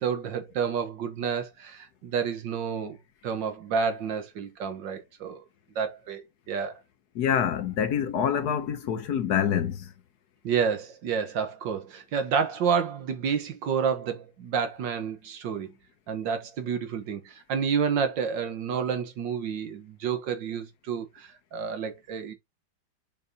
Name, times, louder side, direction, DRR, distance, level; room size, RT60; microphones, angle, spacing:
voice 1, 0.0-3.0 3.2-5.5 5.8-6.8 10.4-15.7 16.1-22.3, right 6 dB, 80° right, 1.7 m, -29 dB
voice 2, 7.1-9.9, left 8 dB, 65° left, 1.2 m, -26 dB
6.8 x 5.4 x 2.8 m
omnidirectional pair, 2.0 m